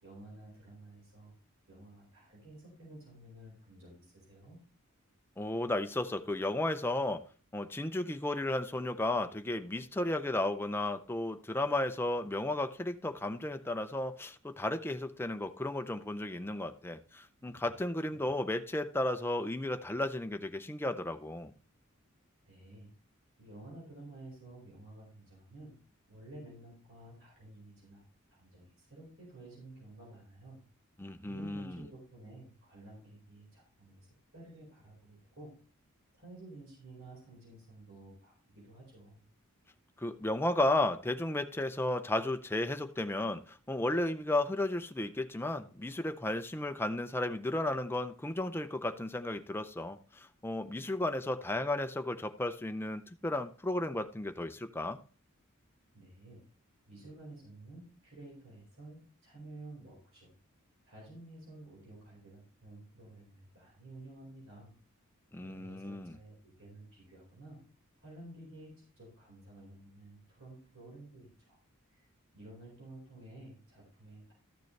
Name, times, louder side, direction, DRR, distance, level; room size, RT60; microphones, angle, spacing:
voice 1, 0.0-1.3 1.7-4.6 17.4-17.7 18.1-18.3 22.4-22.9 23.4-25.7 26.1-28.0 28.3-30.6 31.2-34.1 34.3-35.5 36.1-39.2 55.9-56.4 56.9-60.3 60.8-64.7 65.4-67.6 68.0-71.6 71.9-72.1 72.3-74.3, right 2 dB, 60° right, 4.6 m, -52 dB
voice 2, 5.4-7.2 7.5-21.5 31.0-31.8 40.0-55.0 65.3-66.2, left 1 dB, 10° left, 0.5 m, -34 dB
13.0 x 6.7 x 3.2 m
head